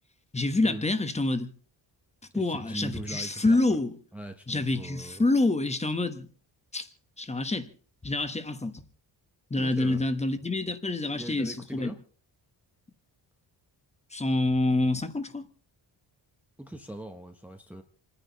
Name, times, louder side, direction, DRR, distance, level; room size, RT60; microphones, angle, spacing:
voice 1, 0.3-1.5 2.3-3.9 4.5-6.3 6.7-6.9 7.2-7.7 8.0-8.8 9.5-11.9 14.1-15.5, left 2 dB, 15° left, 1.2 m, -27 dB
voice 2, 2.3-3.8 4.1-5.2 9.6-10.0 11.2-12.0 16.6-17.8, right 1 dB, 5° right, 0.9 m, -40 dB
28.5 x 10.0 x 4.1 m
wide cardioid pair, 160°, 45 cm